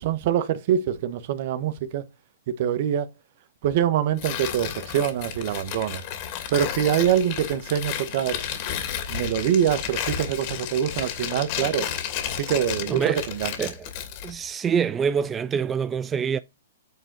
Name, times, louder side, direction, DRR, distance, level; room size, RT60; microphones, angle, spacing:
voice 1, 0.0-2.0 2.6-3.1 3.6-6.0 6.5-8.4 9.1-11.9 12.3-13.5, right 9 dB, 55° right, 1.3 m, -24 dB
Tearing, 4.2-14.4, left 9 dB, 45° left, 2.6 m, -32 dB
voice 2, 12.9-13.3 13.6-13.9 14.2-16.4, right 7 dB, 20° right, 0.4 m, -25 dB
9.1 x 3.9 x 6.2 m
hypercardioid pair, 130°, 0 cm